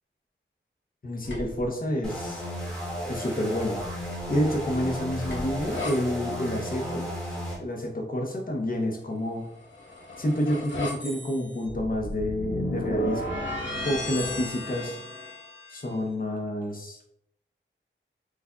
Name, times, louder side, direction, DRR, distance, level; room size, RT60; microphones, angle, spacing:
voice 1, 1.0-2.4 3.0-3.8 4.3-7.1 7.6-9.5 10.2-13.4 13.8-15.0 15.7-17.0, left 1 dB, 45° left, 1 dB, 0.8 m, -29 dB
sound 1, 1.2-1.7 3.6-6.0 9.5-15.8, equal, 65° left, 1.1 m, -34 dB
sound 2, 2.0-7.6, equal, 5° left, 1.2 m, -34 dB
4.7 x 2.5 x 2.2 m, 0.76 s
wide cardioid pair, 60°, 21 cm